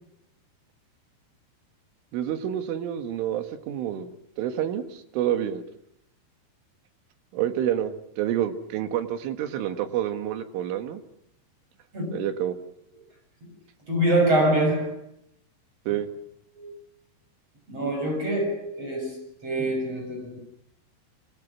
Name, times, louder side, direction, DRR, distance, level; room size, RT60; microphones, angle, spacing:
voice 1, 2.1-4.1 4.4-5.6 7.3-11.0 12.1-12.6 15.9-16.1, right 10 dB, 85° right, 4.3 m, -28 dB
voice 2, 11.9-12.3 13.9-15.0 16.5-16.7 17.7-20.4, right 1 dB, 30° right, 7.8 m, -25 dB
26.5 x 25.5 x 6.2 m
omnidirectional pair, 5.5 m